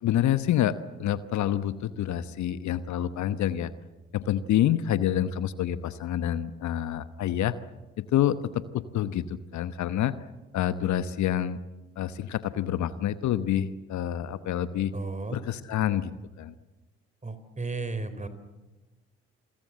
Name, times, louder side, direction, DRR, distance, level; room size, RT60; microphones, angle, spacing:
voice 1, 0.0-3.7 4.1-7.5 8.0-10.1 10.5-11.6 12.0-14.9 15.3-16.6, left 11 dB, 60° left, 14 dB, 1.1 m, -27 dB
voice 2, 14.9-15.4 17.2-18.3, right 3 dB, 20° right, 11 dB, 4.1 m, -34 dB
28.0 x 22.5 x 7.5 m, 1.1 s
hypercardioid pair, 45°, 33 cm